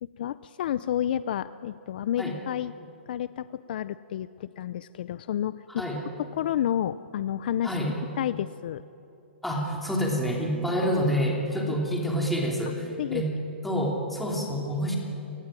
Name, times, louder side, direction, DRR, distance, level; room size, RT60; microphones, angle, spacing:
voice 1, 0.0-2.7 3.1-5.8 6.2-7.8 8.2-8.8 11.7-11.8 13.0-13.2, left 11 dB, 50° left, 15 dB, 0.5 m, -30 dB
voice 2, 5.7-6.0 7.6-7.9 9.4-13.3 13.6-15.0, equal, ahead, -1 dB, 3.1 m, -27 dB
28.0 x 19.0 x 9.0 m, 2.9 s
hypercardioid pair, 165°, 6 cm